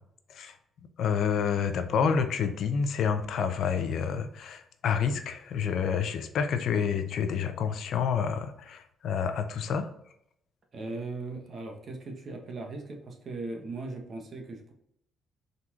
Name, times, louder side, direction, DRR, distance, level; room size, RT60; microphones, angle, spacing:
voice 1, 1.0-9.9, left 7 dB, 70° left, 8 dB, 0.5 m, -28 dB
voice 2, 10.7-14.7, right 3 dB, 50° right, 3 dB, 1.0 m, -38 dB
4.3 x 3.9 x 2.4 m, 0.75 s
cardioid pair, 90°, 0 cm